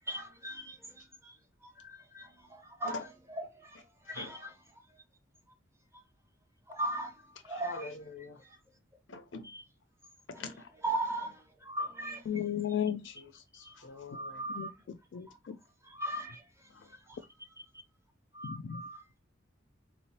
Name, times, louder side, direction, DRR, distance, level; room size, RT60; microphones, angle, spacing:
voice 1, 0.1-0.8 1.2-1.3 1.8-3.0 3.3-3.7 4.1-4.5 6.7-7.1 7.4-7.9 10.8-12.2 13.7-13.8 14.1-14.7 15.8-16.4 17.1-17.2 18.3-19.2, right 1 dB, 15° right, 0.8 m, -38 dB
voice 2, 7.4-8.4 9.1-9.5 10.3-10.7 12.9-14.4 16.7-16.9, left 4 dB, 85° left, 0.8 m, -44 dB
voice 3, 12.3-13.0 14.5-15.6 18.4-18.8, left 9 dB, 65° left, 0.3 m, -35 dB
3.8 x 3.0 x 2.7 m
head